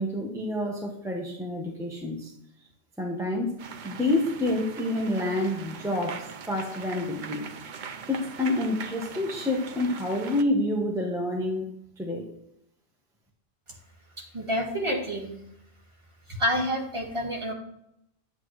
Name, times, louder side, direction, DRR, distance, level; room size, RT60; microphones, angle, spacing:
voice 1, 0.0-2.3 3.0-3.6 3.8-7.5 8.1-12.3, left 1 dB, 5° right, -1 dB, 1.0 m, -28 dB
sound 1, 3.6-10.4, right 6 dB, 50° right, 0.6 m, -41 dB
voice 2, 14.2-15.3 16.3-17.5, equal, 25° right, -1 dB, 1.9 m, -28 dB
9.3 x 8.1 x 3.2 m, 0.75 s
omnidirectional pair, 1.3 m